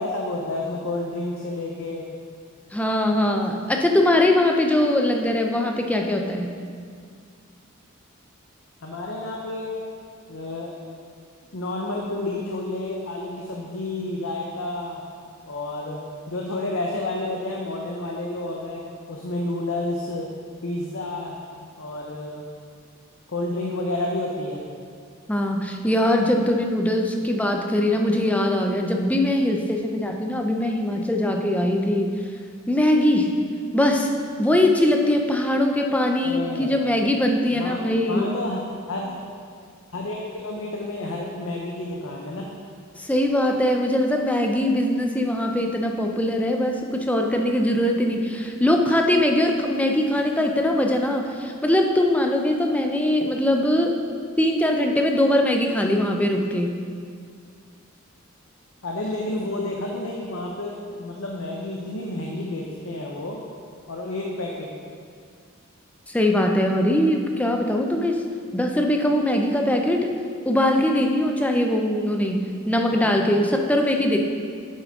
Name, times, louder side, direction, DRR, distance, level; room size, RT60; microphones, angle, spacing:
voice 1, 0.0-2.0 8.8-9.8 10.3-10.7 11.5-15.0 15.5-16.0 16.3-18.8 19.1-20.3 20.6-21.4 21.8-22.4 23.3-24.6 36.2-36.7 37.5-37.8 38.1-38.6 38.9-39.1 39.9-42.5 58.8-63.4 63.9-64.7 72.9-73.3, left 2 dB, 65° left, -1 dB, 0.8 m, -30 dB
voice 2, 2.7-6.5 25.3-32.1 32.7-33.3 33.7-34.1 34.4-38.3 43.0-53.9 54.4-56.7 66.1-68.2 68.5-70.1 70.5-74.2, left 1 dB, 5° left, 2 dB, 0.5 m, -21 dB
8.1 x 7.4 x 3.7 m, 2.2 s
head